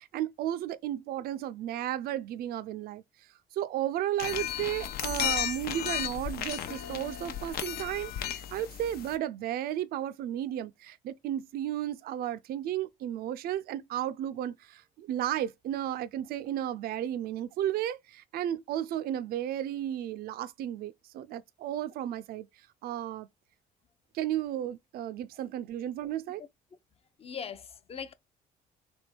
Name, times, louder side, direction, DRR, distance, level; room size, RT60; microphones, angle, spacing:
voice 1, 0.0-3.0 3.5-22.5 22.8-23.3 24.1-26.4, right 11 dB, 65° right, 0.4 m, -33 dB
sound 1, 4.2-9.2, left 10 dB, 65° left, 0.8 m, -34 dB
voice 2, 27.2-28.1, left 7 dB, 35° left, 0.7 m, -40 dB
3.5 x 3.5 x 4.3 m
cardioid pair, 110°, 17 cm